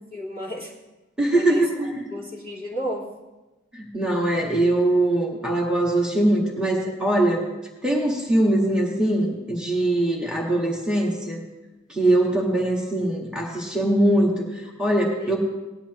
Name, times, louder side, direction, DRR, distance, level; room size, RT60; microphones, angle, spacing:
voice 1, 0.1-0.7 1.3-1.7 2.1-3.1 15.2-15.3, equal, 30° right, -4 dB, 2.5 m, -32 dB
voice 2, 1.2-2.0 3.7-7.4 7.8-11.4 11.9-15.4, right 1 dB, 5° right, -3 dB, 1.7 m, -22 dB
18.5 x 11.5 x 3.1 m, 1.1 s
head